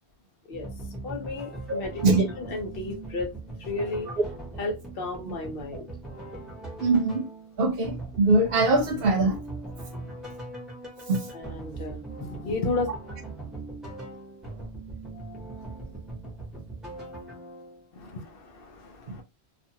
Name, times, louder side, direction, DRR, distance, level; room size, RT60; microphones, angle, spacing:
sound 1, 0.5-17.9, right 2 dB, ahead, 0.8 m, -40 dB
voice 1, 1.0-3.3 3.6-4.1 4.6-5.8 11.3-12.9 18.0-19.2, left 3 dB, 60° left, 0.8 m, -33 dB
voice 2, 1.7-2.3 6.8-7.2 7.6-9.4 11.1-11.3 19.1-19.2, right 3 dB, 65° right, 0.8 m, -23 dB
2.5 x 2.4 x 2.7 m
omnidirectional pair, 1.1 m